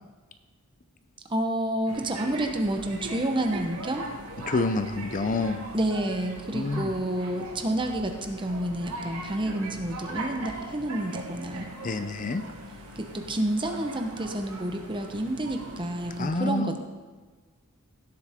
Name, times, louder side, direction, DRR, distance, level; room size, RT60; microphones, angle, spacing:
voice 1, 1.3-4.1 5.7-11.7 13.0-16.8, right 1 dB, 25° right, 4 dB, 1.1 m, -29 dB
sound 1, 1.9-16.3, right 2 dB, 80° right, 1.7 m, -40 dB
voice 2, 4.4-5.6 6.5-6.9 11.8-12.4 16.2-16.8, left 3 dB, 35° left, 10 dB, 0.5 m, -28 dB
16.5 x 8.0 x 3.7 m, 1.4 s
head